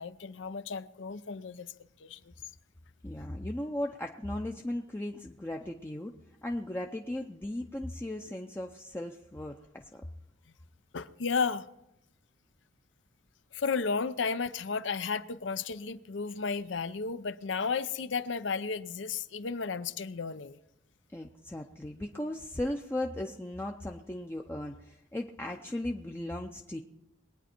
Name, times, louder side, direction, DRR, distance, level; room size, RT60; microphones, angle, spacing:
voice 1, 0.0-1.7 2.0-2.3 10.9-11.7 13.5-20.6, left 5 dB, 70° left, 0.6 m, -33 dB
voice 2, 3.0-6.1 6.4-10.0 21.1-26.8, left 1 dB, 10° left, 0.6 m, -37 dB
22.0 x 9.2 x 4.4 m
head